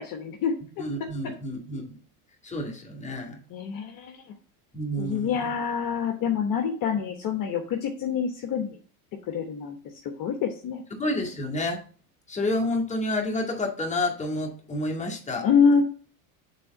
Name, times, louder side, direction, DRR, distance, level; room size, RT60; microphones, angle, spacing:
voice 1, 0.0-0.9 3.5-4.4 5.0-8.8 9.3-9.8 10.0-10.8 15.4-15.8, left 6 dB, 45° left, 4 dB, 1.1 m, -26 dB
voice 2, 0.8-2.0 2.4-3.4 4.7-5.4 11.0-11.8 12.3-15.5, left 1 dB, 15° left, 0 dB, 1.9 m, -29 dB
6.7 x 3.6 x 5.2 m, 0.41 s
supercardioid pair, 105°, 46 cm